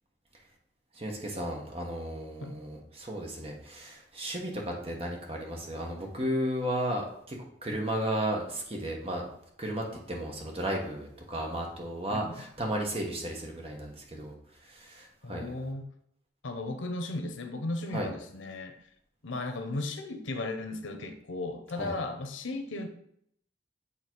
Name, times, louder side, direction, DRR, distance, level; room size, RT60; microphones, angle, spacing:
voice 1, 1.0-7.4 7.6-9.2 9.6-14.3 14.7-15.5 17.9-18.1 21.8-21.9, right 1 dB, 30° right, 0 dB, 1.2 m, -34 dB
voice 2, 12.1-12.5 15.2-15.9 16.4-18.7 19.2-22.9, left 2 dB, 90° left, 6 dB, 0.8 m, -36 dB
8.3 x 3.2 x 4.6 m, 0.70 s
head